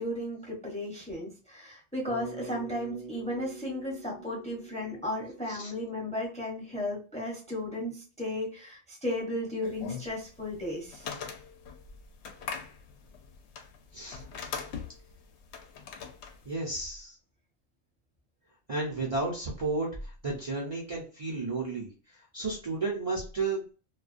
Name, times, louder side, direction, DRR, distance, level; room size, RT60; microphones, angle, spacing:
voice 1, 0.0-11.1, left 1 dB, 5° left, -3 dB, 0.7 m, -35 dB
Bass guitar, 2.1-6.4, right 3 dB, 75° right, 0.9 m, -45 dB
sound 1, 9.6-16.5, left 6 dB, 75° left, 0.8 m, -41 dB
voice 2, 13.9-14.2 16.4-17.2 18.7-21.9 22.3-23.7, right 3 dB, 40° right, -4 dB, 0.6 m, -32 dB
2.3 x 2.2 x 2.4 m, 0.37 s
omnidirectional pair, 1.2 m